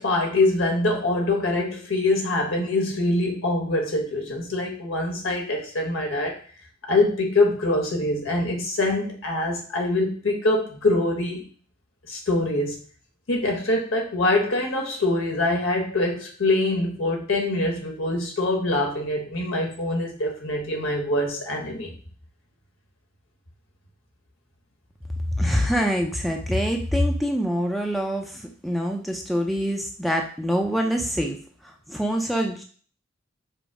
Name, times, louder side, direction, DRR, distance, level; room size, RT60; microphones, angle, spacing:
voice 1, 0.0-6.4 6.9-11.4 12.1-12.8 13.3-21.9, left 2 dB, 80° left, 1 dB, 1.3 m, -24 dB
voice 2, 25.4-31.4 31.6-32.6, equal, ahead, 1 dB, 0.4 m, -25 dB
5.2 x 2.0 x 4.7 m, 0.42 s
head